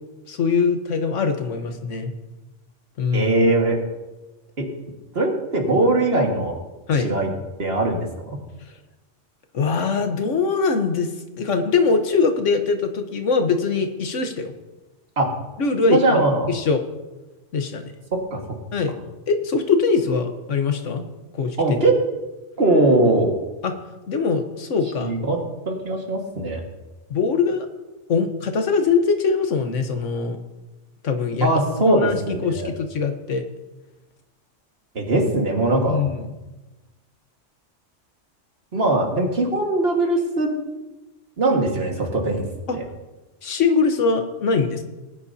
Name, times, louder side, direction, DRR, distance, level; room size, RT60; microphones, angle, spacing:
voice 1, 0.3-2.1 3.0-3.3 6.9-7.1 9.5-11.1 11.4-14.5 15.6-16.2 16.5-16.8 17.5-17.8 18.7-18.9 19.3-21.0 21.3-21.6 23.6-23.8 24.1-25.1 27.1-27.7 28.1-30.4 31.0-31.5 31.8-33.4 35.9-36.3 42.7-42.8 43.4-44.8, left 5 dB, 80° left, 6 dB, 1.4 m, -22 dB
voice 2, 3.1-3.8 4.6-4.7 5.1-6.5 7.0-7.3 7.6-8.4 15.2-15.3 15.9-16.5 18.3-18.4 21.6-22.0 22.6-23.3 25.0-25.4 25.7-26.6 31.4-32.7 35.0-36.0 38.7-40.5 41.4-42.5, right 2 dB, 55° right, 1 dB, 1.9 m, -20 dB
19.0 x 9.8 x 2.7 m, 1.1 s
omnidirectional pair, 1.2 m